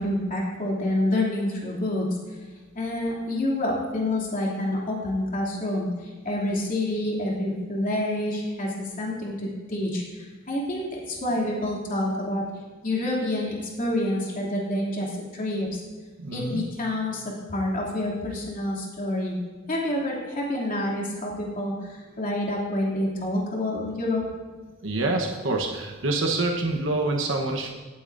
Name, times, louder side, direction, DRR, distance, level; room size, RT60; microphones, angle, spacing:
voice 1, 0.0-2.4 2.7-12.4 12.8-15.7 16.3-19.4 19.7-24.2, left 1 dB, 45° left, -4 dB, 2.8 m, -28 dB
voice 2, 16.2-16.6 24.8-27.7, right 2 dB, 80° right, 1 dB, 1.1 m, -26 dB
17.5 x 8.5 x 2.6 m, 1.4 s
head